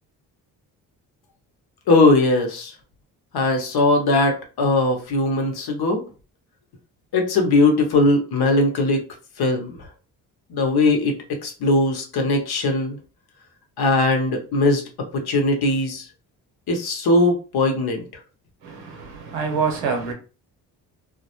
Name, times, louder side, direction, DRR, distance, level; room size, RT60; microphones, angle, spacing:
voice 1, 1.9-2.7 3.3-6.0 7.1-9.0 9.4-9.8 10.5-11.2 11.4-13.0 13.8-16.1 16.7-18.0, left 2 dB, 60° left, 0.8 m, -20 dB
voice 2, 18.6-20.1, right 5 dB, 85° right, 0.8 m, -26 dB
2.2 x 2.1 x 2.8 m
supercardioid pair, 50°, 44 cm